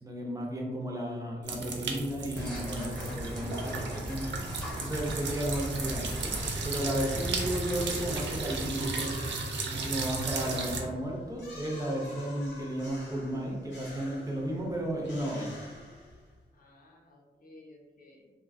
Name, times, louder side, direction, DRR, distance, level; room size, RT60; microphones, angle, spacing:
voice 1, 0.0-4.4 4.8-6.4 6.6-9.2 9.7-15.6, right 1 dB, 20° right, -1 dB, 0.4 m, -34 dB
sound 1, 1.4-10.8, right 3 dB, 75° right, 0.4 m, -35 dB
sound 2, 2.3-8.9, equal, 5° left, 0.8 m, -39 dB
sound 3, 8.8-16.4, left 2 dB, 80° left, 0.8 m, -48 dB
voice 2, 16.5-18.3, left 2 dB, 50° left, -1 dB, 0.6 m, -56 dB
2.6 x 2.4 x 2.4 m, 1.3 s
wide cardioid pair, 165°, 19 cm